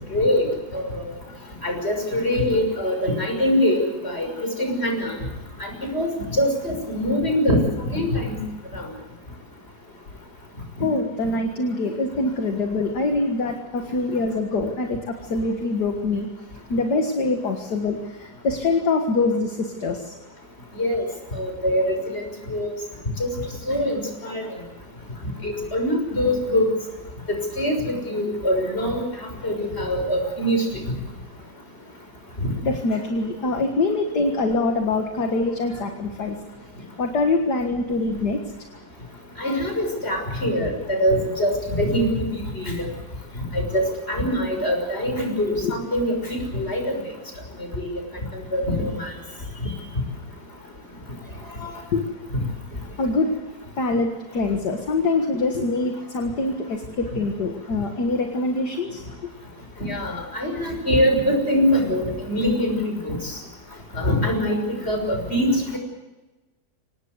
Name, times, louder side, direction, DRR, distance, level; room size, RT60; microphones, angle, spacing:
voice 1, 0.1-0.5 0.7-1.0 1.6-4.3 4.6-5.2 5.6-7.6 7.9-8.4 8.7-8.9 20.8-21.1 21.4-22.2 22.5-22.7 23.2-23.3 23.7-24.4 25.4-26.7 27.3-29.0 29.4-30.6 32.4-32.5 39.4-42.3 42.5-42.9 43.5-46.8 47.7-47.9 48.3-49.1 49.6-49.7 51.6-51.7 59.8-63.3 63.9-64.6 64.8-65.8, equal, 35° left, 3 dB, 6.5 m, -23 dB
voice 2, 10.8-16.3 16.7-20.1 32.6-36.4 37.0-38.4 45.6-45.7 51.9-52.0 53.0-53.3 53.8-59.0, left 3 dB, 65° left, 4 dB, 2.3 m, -24 dB
26.0 x 19.0 x 8.1 m, 1.2 s
omnidirectional pair, 2.0 m